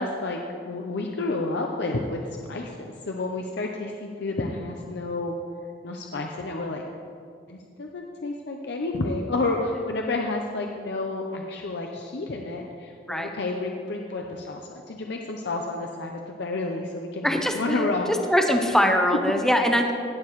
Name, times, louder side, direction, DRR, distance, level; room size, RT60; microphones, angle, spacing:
voice 1, 0.0-5.3 5.8-6.8 7.5-18.1, left 2 dB, 65° left, 2 dB, 0.6 m, -30 dB
voice 2, 17.2-17.9 18.3-19.9, equal, 5° left, 3 dB, 0.6 m, -22 dB
16.5 x 6.8 x 3.1 m, 2.3 s
head